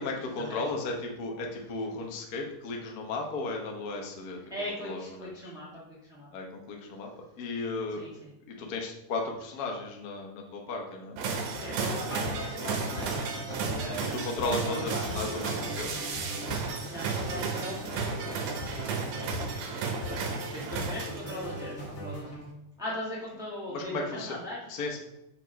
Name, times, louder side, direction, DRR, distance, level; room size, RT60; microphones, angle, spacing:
voice 1, 0.0-4.4 4.8-5.5 6.3-7.1 7.4-8.0 8.5-11.2 14.1-16.1 23.7-24.4 24.7-25.0, left 3 dB, 80° left, 1 dB, 0.8 m, -35 dB
voice 2, 4.5-6.3 8.0-8.3 11.5-15.6 16.9-19.1 20.1-22.3 22.8-24.6, left 1 dB, 5° right, -7 dB, 0.5 m, -40 dB
sound 1, 11.2-22.5, left 1 dB, 40° left, 2.3 m, -40 dB
sound 2, 11.2-21.6, right 5 dB, 85° right, 2.5 m, -34 dB
5.8 x 4.7 x 5.0 m, 0.88 s
omnidirectional pair, 3.5 m